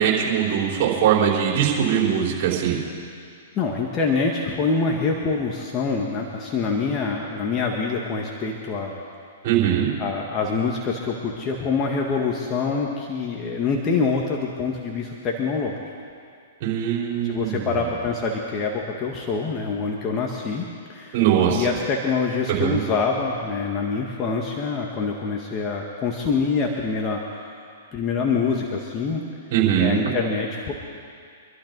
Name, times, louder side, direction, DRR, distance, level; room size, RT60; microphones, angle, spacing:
voice 1, 0.0-2.8 9.4-9.9 16.6-17.9 21.1-21.6 22.6-22.8 29.5-30.1, right 9 dB, 50° right, -3 dB, 4.8 m, -21 dB
voice 2, 3.6-9.0 10.0-15.8 17.2-20.6 20.9-21.2 21.5-27.5 27.9-29.2 29.8-30.7, left 4 dB, 30° left, 0 dB, 1.8 m, -25 dB
26.0 x 12.0 x 4.1 m, 2.3 s
hypercardioid pair, 120°, 0 cm